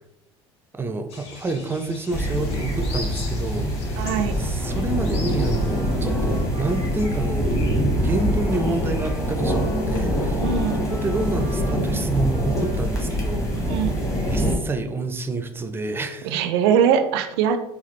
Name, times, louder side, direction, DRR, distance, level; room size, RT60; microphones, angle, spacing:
voice 1, 0.7-3.7 4.4-7.7 8.0-10.4 10.7-13.7 14.3-16.3, right 2 dB, 15° right, 7 dB, 0.5 m, -28 dB
sound 1, 1.1-7.1, left 3 dB, 50° left, 0.8 m, -41 dB
sound 2, 2.1-14.5, equal, 20° left, 1.3 m, -24 dB
voice 2, 4.0-4.4 10.4-10.9 13.7-14.0 16.2-17.6, right 8 dB, 75° right, 9 dB, 0.4 m, -21 dB
Wind instrument woodwind instrument, 5.5-13.1, left 3 dB, 85° left, 1.2 m, -40 dB
4.0 x 2.4 x 3.1 m, 0.86 s
hypercardioid pair, 80°, 13 cm